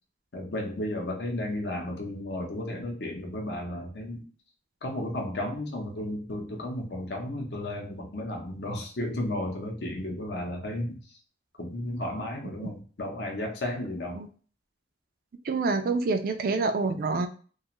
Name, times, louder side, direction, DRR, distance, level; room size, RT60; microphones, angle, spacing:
voice 1, 0.3-4.2 4.8-11.0 11.6-14.2, left 1 dB, 70° left, 2 dB, 0.7 m, -33 dB
voice 2, 15.4-17.3, right 3 dB, 50° right, 7 dB, 0.3 m, -27 dB
2.4 x 2.3 x 2.9 m, 0.40 s
head